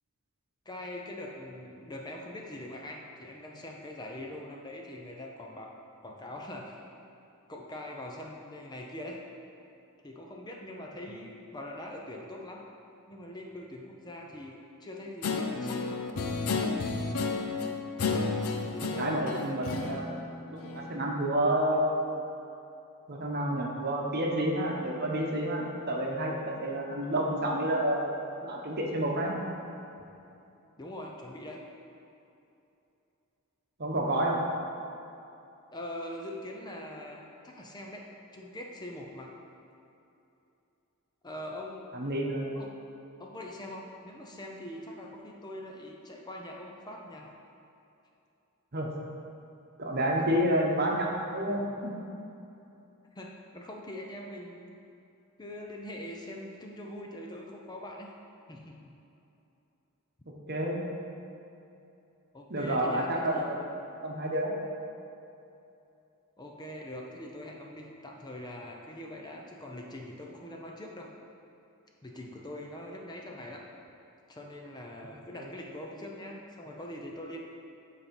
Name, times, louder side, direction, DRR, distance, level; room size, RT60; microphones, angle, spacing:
voice 1, 0.7-5.8 6.0-6.9 7.5-9.2 10.0-12.6 13.1-15.8 16.5-16.9 18.7-19.6 30.8-31.6 35.7-38.1 38.3-39.3 41.2-41.9 42.5-42.8 43.2-47.3 50.2-50.3 53.2-54.7 55.4-58.1 58.5-59.0 62.3-63.5 66.4-71.1 72.0-73.7 74.3-77.4, left 1 dB, 20° left, 0 dB, 0.6 m, -43 dB
Guitar, 15.2-21.0, left 4 dB, 70° left, 0.6 m, -32 dB
voice 2, 19.0-20.2 20.5-22.2 23.1-29.4 33.8-34.4 41.9-42.5 48.7-48.9 49.8-51.9 60.5-60.8 62.5-63.6 64.0-64.5 75.4-75.5, right 1 dB, 50° right, -1 dB, 1.0 m, -29 dB
8.6 x 4.1 x 5.3 m, 2.7 s
head